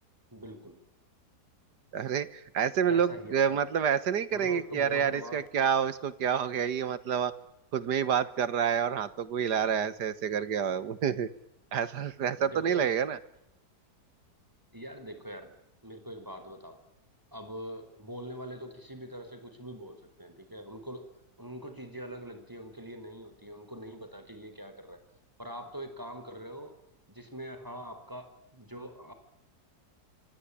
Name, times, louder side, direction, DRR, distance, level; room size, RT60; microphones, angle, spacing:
voice 1, 0.3-0.8 2.9-3.6 4.3-5.4 12.4-12.9 14.7-15.5 15.8-16.8 17.3-21.1 21.4-25.0 25.4-26.8 27.1-29.1, equal, 10° right, 8 dB, 4.8 m, -43 dB
voice 2, 1.9-7.3 7.7-11.3 11.7-13.2, right 7 dB, 80° right, 15 dB, 1.9 m, -28 dB
27.0 x 25.5 x 8.7 m, 0.83 s
omnidirectional pair, 1.8 m